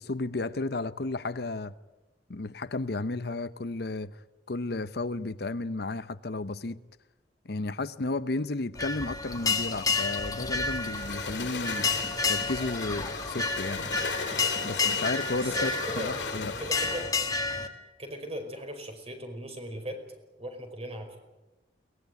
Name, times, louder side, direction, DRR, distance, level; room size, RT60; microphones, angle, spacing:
voice 1, 0.0-1.7 2.3-4.2 4.5-6.8 7.4-11.9 12.3-13.9 14.6-15.7 16.0-16.5, left 2 dB, 65° left, 0.8 m, -33 dB
sound 1, 8.7-17.7, left 4 dB, 20° left, 1.9 m, -30 dB
sound 2, 10.7-17.2, left 4 dB, 85° left, 2.8 m, -37 dB
voice 2, 15.4-16.1 16.6-17.1 18.0-20.0 20.4-21.2, equal, 35° right, 5.0 m, -38 dB
23.0 x 19.5 x 9.4 m
head